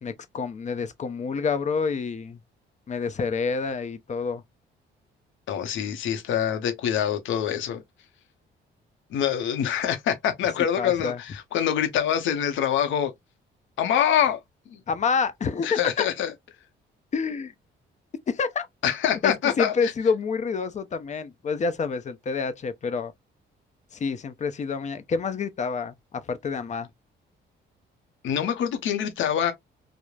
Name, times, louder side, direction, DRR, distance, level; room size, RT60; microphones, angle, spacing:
voice 1, 0.0-2.4 2.9-4.4 10.8-11.2 14.9-16.1 17.1-17.5 18.3-18.7 19.2-23.1 23.9-26.9, left 5 dB, 35° left, 0.5 m, -28 dB
voice 2, 5.5-7.8 9.1-13.1 13.8-14.4 14.7-14.8 15.6-16.3 18.8-19.9 28.2-29.5, left 9 dB, 80° left, 0.7 m, -25 dB
3.1 x 2.0 x 2.3 m
cardioid pair, 90°, 20 cm